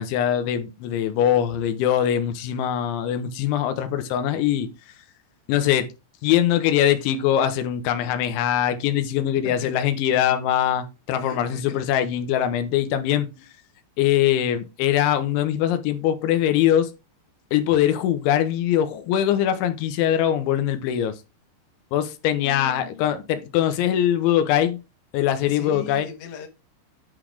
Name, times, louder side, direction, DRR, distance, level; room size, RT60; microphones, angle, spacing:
voice 1, 0.0-4.7 5.5-5.9 6.2-13.3 14.0-16.9 17.5-21.2 21.9-24.8 25.1-26.1, left 10 dB, 85° left, 3.3 m, -22 dB
voice 2, 11.2-11.8 22.4-23.2 25.5-26.5, left 8 dB, 70° left, 3.4 m, -39 dB
10.0 x 4.0 x 4.7 m
omnidirectional pair, 5.4 m